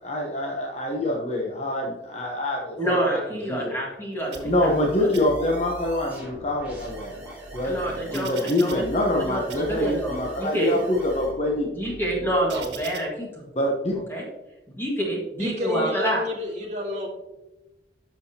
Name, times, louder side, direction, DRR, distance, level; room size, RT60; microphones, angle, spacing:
voice 1, 0.0-3.2 3.5-3.7 4.4-7.2 7.5-7.8 8.1-11.7 13.5-14.0, left 1 dB, 40° left, 0 dB, 1.0 m, -25 dB
voice 2, 2.8-5.1 7.6-8.8 9.2-10.8 11.7-13.3 14.1-14.3 14.8-16.2, right 1 dB, 15° left, -3 dB, 1.8 m, -27 dB
sound 1, 4.2-11.3, right 1 dB, 10° right, 2.6 m, -43 dB
sound 2, 4.3-4.8 5.1-5.8 6.4-9.2 9.5-10.2 10.8-13.0, right 2 dB, 80° right, 1.3 m, -41 dB
voice 3, 15.4-17.1, left 1 dB, 40° right, 0 dB, 1.7 m, -29 dB
10.5 x 6.2 x 2.9 m, 0.98 s
head